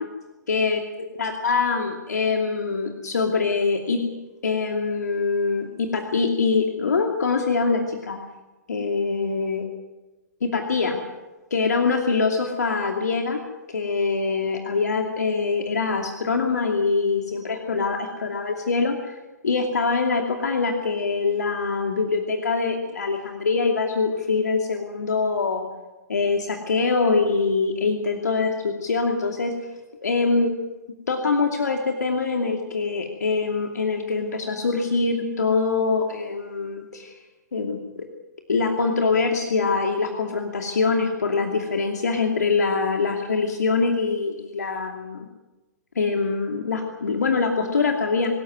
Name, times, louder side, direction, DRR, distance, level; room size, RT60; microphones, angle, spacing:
voice 1, 0.5-0.8 1.2-4.0 4.4-8.2 8.7-9.6 10.4-11.0 11.5-13.4 13.7-19.2 19.4-25.7 26.1-29.5 30.0-30.5 31.1-37.2 37.5-37.8 38.5-45.3 45.9-48.3, left 4 dB, 70° left, 3 dB, 2.6 m, -24 dB
25.5 x 13.5 x 9.4 m, 1.1 s
figure-of-eight pair, 115°, 9 cm